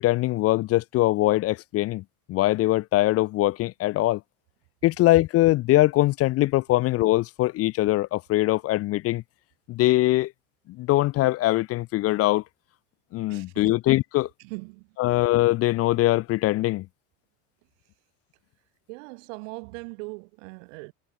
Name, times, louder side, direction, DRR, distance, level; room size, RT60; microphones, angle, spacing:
voice 1, 0.0-2.0 2.3-4.2 4.8-9.2 9.7-10.3 10.8-12.4 13.1-14.3 15.0-16.9, left 17 dB, 40° left, 0.4 m, -22 dB
voice 2, 13.3-13.7 14.4-15.0 18.9-20.9, right 31 dB, 80° right, 2.4 m, -40 dB
supercardioid pair, 100°, 38 cm